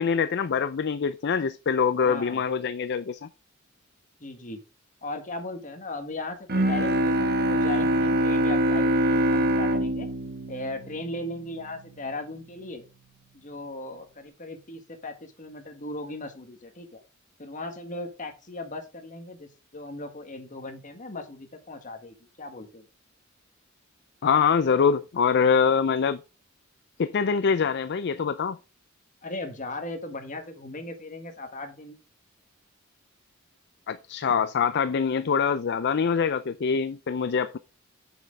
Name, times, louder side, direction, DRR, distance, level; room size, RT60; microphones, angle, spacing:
voice 1, 0.0-3.3 24.2-26.2 27.0-28.6 33.9-37.6, left 6 dB, 55° left, 0.4 m, -24 dB
voice 2, 2.0-2.4 4.2-4.6 5.0-10.1 10.5-12.8 13.3-17.0 17.4-22.8 29.2-32.0, left 2 dB, 40° left, 1.6 m, -37 dB
Bowed string instrument, 6.5-11.6, right 1 dB, 50° right, 1.2 m, -24 dB
7.8 x 7.4 x 3.8 m
head